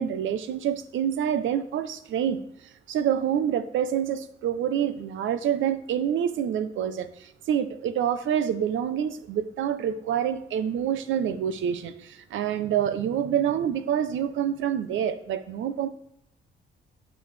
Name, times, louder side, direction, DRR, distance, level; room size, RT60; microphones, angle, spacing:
voice 1, 0.0-2.4 2.9-15.9, right 9 dB, 75° right, 0.6 m, -27 dB
10.0 x 6.1 x 3.3 m
cardioid pair, 90°, 20 cm